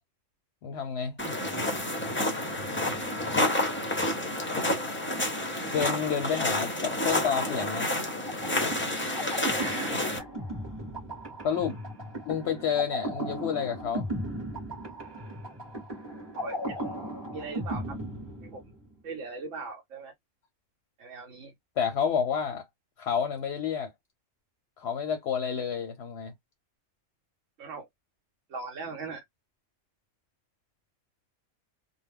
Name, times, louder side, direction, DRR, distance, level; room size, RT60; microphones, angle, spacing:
voice 1, 0.6-1.2 5.7-7.9 11.4-11.8 12.2-14.1 21.8-22.6 23.0-23.9 24.8-26.3, left 7 dB, 65° left, 0.7 m, -29 dB
sound 1, 1.2-10.2, left 1 dB, 15° left, 0.4 m, -29 dB
voice 2, 1.2-1.7 7.2-7.4 9.6-10.3 16.3-17.0 17.3-18.0 18.4-18.6 19.0-20.1 21.0-21.5 27.6-27.9 28.5-29.2, right 4 dB, 75° right, 1.0 m, -40 dB
sound 2, 8.3-18.9, right 1 dB, 25° right, 0.8 m, -36 dB
2.3 x 2.0 x 3.4 m
omnidirectional pair, 1.3 m